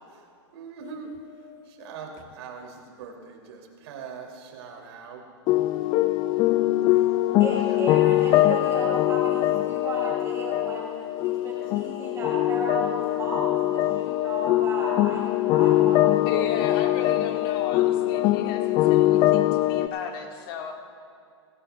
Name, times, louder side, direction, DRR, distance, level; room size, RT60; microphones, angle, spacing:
voice 1, 0.5-1.1 1.8-2.1 2.4-5.2 6.9-7.8 8.1-8.5, right 6 dB, 60° right, 1 dB, 2.7 m, -42 dB
sound 1, 5.5-19.9, left 15 dB, 30° left, 0.3 m, -22 dB
voice 2, 7.4-16.5, right 1 dB, 20° right, -4 dB, 2.7 m, -34 dB
voice 3, 16.3-20.7, left 7 dB, 50° left, 2 dB, 1.8 m, -35 dB
18.0 x 17.0 x 2.4 m, 2.5 s
hypercardioid pair, 130°, 15 cm